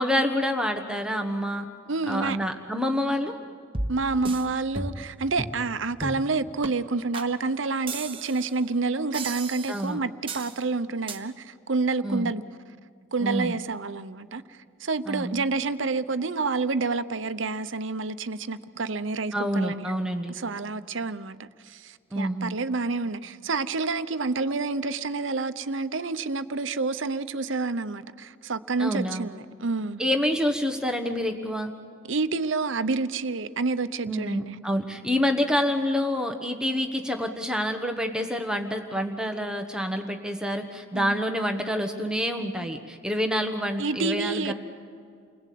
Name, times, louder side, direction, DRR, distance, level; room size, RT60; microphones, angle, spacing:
voice 1, 0.0-1.7 2.1-3.4 9.7-10.0 12.0-12.3 13.2-13.6 15.1-15.4 19.3-20.3 22.1-22.6 28.8-29.3 30.0-31.7 34.1-44.5, equal, 5° right, 4 dB, 1.2 m, -27 dB
voice 2, 1.9-2.4 3.9-12.4 13.1-14.4 14.8-19.9 20.3-30.0 32.1-34.6 40.9-41.2 43.8-44.5, right 3 dB, 70° right, 12 dB, 0.9 m, -28 dB
sound 1, 3.7-4.4 4.8-5.1 5.4-5.6 6.0-6.3 6.6-6.7 7.1-7.3 7.9-8.5 9.1-9.9 10.3-10.6 11.1-11.2, right 2 dB, 25° right, 1.4 m, -34 dB
29.5 x 21.0 x 8.5 m, 2.2 s
head